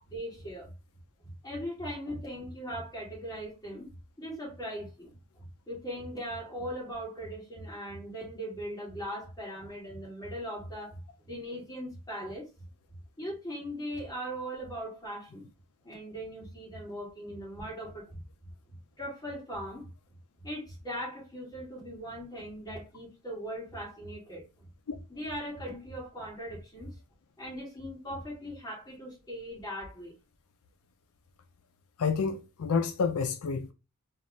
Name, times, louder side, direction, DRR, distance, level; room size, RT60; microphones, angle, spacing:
voice 1, 0.1-0.7 1.2-3.9 4.2-5.2 5.7-11.0 11.3-12.5 13.2-15.5 15.8-18.2 19.0-19.9 20.4-24.4 25.1-26.9 27.4-30.1, equal, 20° left, 2.4 m, -39 dB
voice 2, 32.0-33.7, left 5 dB, 85° left, 0.4 m, -29 dB
3.9 x 2.4 x 3.5 m
head